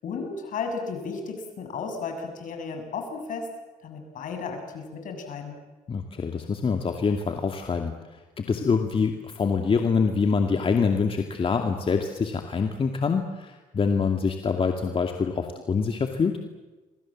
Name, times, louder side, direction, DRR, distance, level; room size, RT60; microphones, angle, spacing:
voice 1, 0.0-3.5 3.8-5.6, left 4 dB, 65° left, 5 dB, 7.2 m, -34 dB
voice 2, 5.9-7.9 8.4-16.3, left 5 dB, 40° left, 4 dB, 2.4 m, -25 dB
29.0 x 23.5 x 7.6 m, 1.2 s
supercardioid pair, 80°, 15 cm